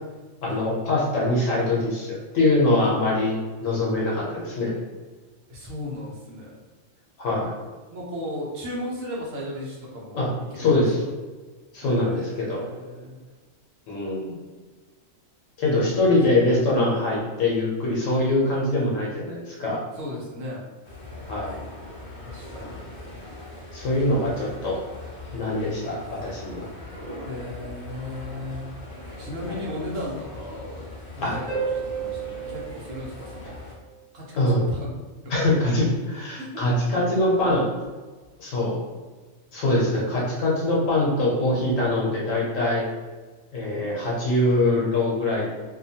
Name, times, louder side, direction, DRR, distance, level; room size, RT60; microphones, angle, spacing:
voice 1, 0.4-4.7 7.2-7.5 10.1-10.3 10.6-11.0 11.7-12.6 13.9-14.4 15.6-19.8 21.3-21.5 22.6-22.7 23.7-24.8 25.3-26.7 29.5-29.6 31.2-31.3 34.4-34.6 35.3-37.7 38.4-38.8 39.5-42.8 43.5-45.5, left 2 dB, 75° left, -5 dB, 1.0 m, -23 dB
voice 2, 5.5-6.5 7.9-10.8 11.8-13.2 15.7-16.2 20.0-20.6 22.2-22.8 27.2-28.7 29.2-30.9 31.1-31.7 32.0-33.6 34.1-34.9 35.2-35.3 36.4-36.7, left 1 dB, 75° right, -4 dB, 1.1 m, -36 dB
sound 1, 20.8-33.7, left 1 dB, 50° left, 0.6 m, -40 dB
Harp, 31.5-34.0 37.5-37.6, right 6 dB, 30° right, 1.4 m, -32 dB
2.7 x 2.2 x 2.7 m, 1.4 s
omnidirectional pair, 1.4 m